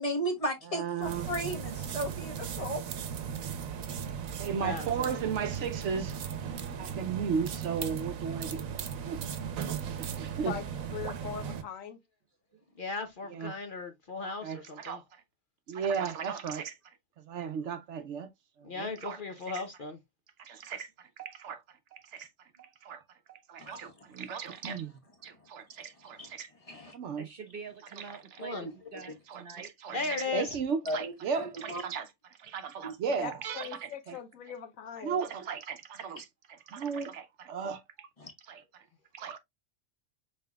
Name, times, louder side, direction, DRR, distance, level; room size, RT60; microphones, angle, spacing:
voice 1, 0.0-2.8 23.6-23.8 26.2-26.3 26.7-26.9 28.5-28.6 30.9-31.8 32.8-32.9 38.2-38.3, right 1 dB, 30° left, 1.2 m, -35 dB
voice 2, 0.7-1.3 4.4-6.2 6.8-8.7 9.1-9.3 9.6-9.7 9.9-10.5 13.3-13.6 14.2-15.0 15.7-16.8 17.3-18.3 18.6-19.2 19.5-19.6 20.4-21.6 21.9-22.3 22.6-23.0 23.3-26.5 26.9-27.3 29.3-32.1 32.5-34.2 35.0-38.1 38.5-38.8 39.1-39.4, right 6 dB, 65° right, 0.9 m, -36 dB
sound 1, 1.0-11.6, right 7 dB, 85° right, 1.2 m, -37 dB
voice 3, 4.4-5.2 12.8-15.0 18.6-20.0 28.4-28.7 29.9-30.6, left 3 dB, 45° left, 0.8 m, -36 dB
voice 4, 10.9-12.0 33.1-35.2, left 8 dB, 80° left, 1.2 m, -41 dB
voice 5, 27.1-30.4, right 5 dB, 45° right, 1.1 m, -46 dB
5.6 x 4.2 x 2.2 m
omnidirectional pair, 1.4 m